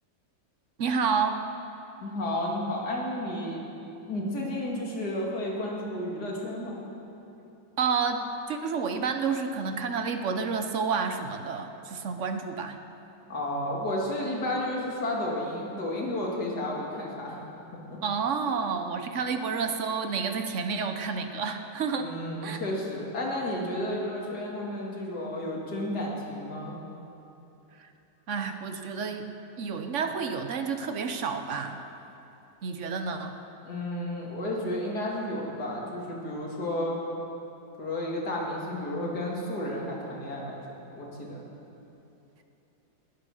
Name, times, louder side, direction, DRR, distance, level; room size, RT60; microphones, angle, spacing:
voice 1, 0.8-1.4 7.8-12.8 18.0-22.1 22.4-22.6 27.8-27.9 28.3-29.2 29.6-31.8 32.6-33.4, right 5 dB, 55° right, 7 dB, 0.9 m, -30 dB
voice 2, 2.0-3.6 4.1-6.7 13.3-17.4 17.9-18.0 22.0-26.8 33.6-37.0 37.8-40.6 40.9-41.4, left 1 dB, 55° left, -3 dB, 3.0 m, -32 dB
19.0 x 9.1 x 6.4 m, 2.9 s
omnidirectional pair, 2.0 m